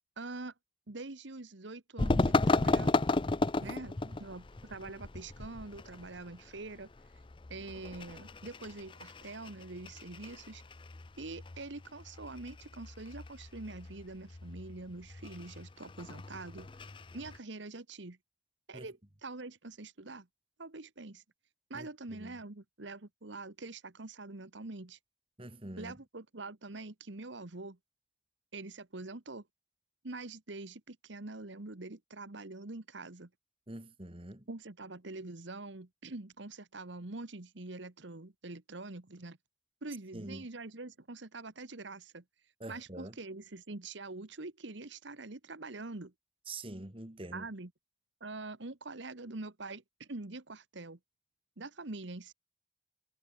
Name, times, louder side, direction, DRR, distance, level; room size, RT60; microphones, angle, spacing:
voice 1, 0.2-0.5 0.9-3.1 3.6-6.9 7.5-10.6 11.2-16.7 17.1-18.2 18.7-20.3 20.6-21.2 21.7-25.0 25.8-27.8 28.5-29.4 30.0-33.3 34.5-39.4 39.8-42.2 42.7-46.1 47.3-47.7 48.2-51.0 51.6-52.3, right 2 dB, 70° right, 1.4 m, -45 dB
sound 1, 2.0-17.4, left 2 dB, 25° left, 0.5 m, -35 dB
voice 2, 3.6-4.2 18.7-18.9 21.7-22.4 25.4-26.0 33.7-34.5 40.1-40.5 42.6-43.2 46.5-47.5, right 2 dB, 30° right, 1.9 m, -45 dB
head